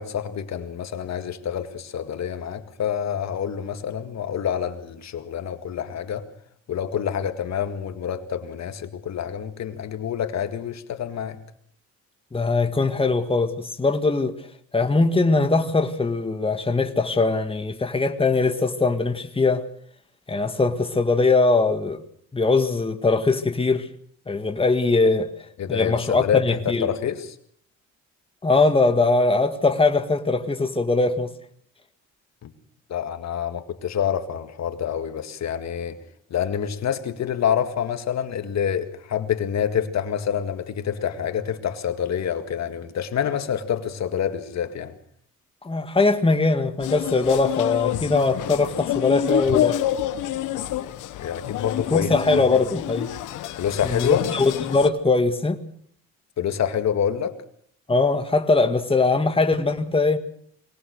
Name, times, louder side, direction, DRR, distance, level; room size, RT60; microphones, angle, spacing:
voice 1, 0.0-6.3 6.7-11.4 25.6-27.4 32.4-32.5 32.9-36.0 36.3-44.9 51.2-52.5 53.6-54.2 56.4-57.4, left 8 dB, 60° left, 2.0 m, -27 dB
voice 2, 12.3-14.5 14.7-19.6 20.3-22.0 22.3-23.9 24.3-25.3 25.7-26.9 28.4-31.3 45.6-49.8 51.9-53.1 53.8-55.6 57.9-60.2, left 3 dB, 20° left, 1.9 m, -21 dB
sound 1, 46.8-54.9, left 12 dB, 85° left, 1.3 m, -28 dB
22.0 x 18.5 x 6.6 m
cardioid pair, 90°, 30 cm